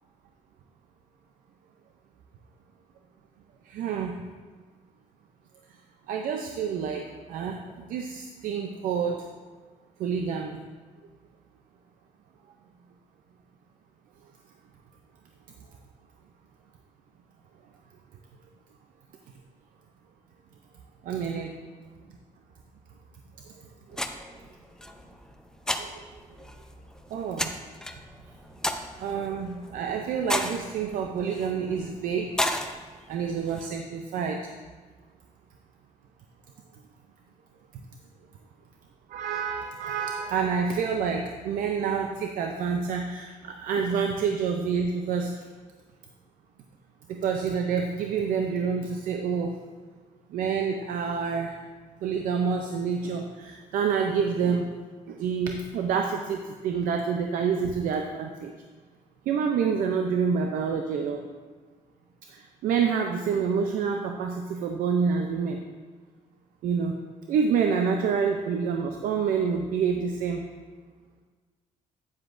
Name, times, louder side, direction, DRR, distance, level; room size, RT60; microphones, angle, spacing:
voice 1, 3.6-4.2 6.1-9.2 10.0-10.6 21.0-21.5 23.9-24.0 25.8-26.0 27.1-27.5 29.0-32.3 33.1-34.5 39.1-45.5 47.1-49.5 50.3-51.6 52.0-54.7 55.1-58.5 59.3-61.2 62.3-65.6 66.6-66.9 67.3-70.5, right 6 dB, 80° right, 4 dB, 0.6 m, -28 dB
sound 1, 23.9-33.7, left 1 dB, 5° left, 0.5 m, -35 dB
9.6 x 7.7 x 2.6 m, 1.5 s
cardioid pair, 100°, 14 cm